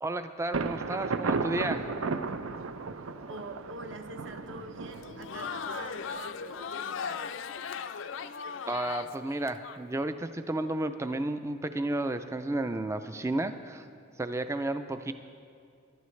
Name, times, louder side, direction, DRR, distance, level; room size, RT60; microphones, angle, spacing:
voice 1, 0.0-1.9 8.7-13.9 14.2-15.1, right 2 dB, 15° right, 9 dB, 0.3 m, -32 dB
Thunder, 0.5-6.2, right 4 dB, 75° right, 0.5 m, -34 dB
voice 2, 3.3-7.2, right 2 dB, 60° right, 5 dB, 1.0 m, -44 dB
Crowd, 4.9-9.8, left 6 dB, 60° left, 0.4 m, -38 dB
20.5 x 11.5 x 3.2 m, 2.4 s
head